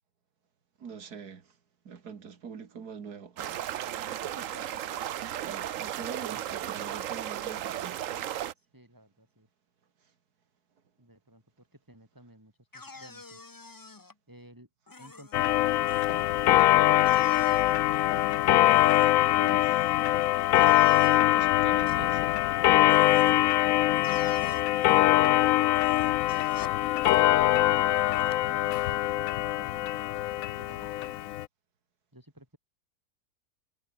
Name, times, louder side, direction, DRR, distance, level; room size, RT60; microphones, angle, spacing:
voice 1, 0.8-1.5 1.9-3.6 5.3-8.0 19.3-20.0 21.1-22.3, right 6 dB, 75° right, 2.4 m, -44 dB
sound 1, 3.4-8.5, right 11 dB, 60° right, 1.0 m, -35 dB
voice 2, 4.0-4.6 5.4-5.5 6.3-6.4 8.5-9.5 11.0-13.4 14.3-14.7 15.0-18.0 23.9-25.1 26.8-31.3 32.1-32.6, right 1 dB, 10° right, 5.7 m, -52 dB
sound 2, 12.7-14.1 14.9-15.4 15.9-16.1 17.0-17.8 18.6-19.2 20.5-21.2 21.9-22.0 22.9-23.3 24.0-25.0 25.7-26.8 27.0-27.2 28.1-28.3, left 3 dB, 25° left, 0.5 m, -47 dB
Clock, 15.3-31.4, left 15 dB, 70° left, 0.9 m, -23 dB
omnidirectional pair, 1.7 m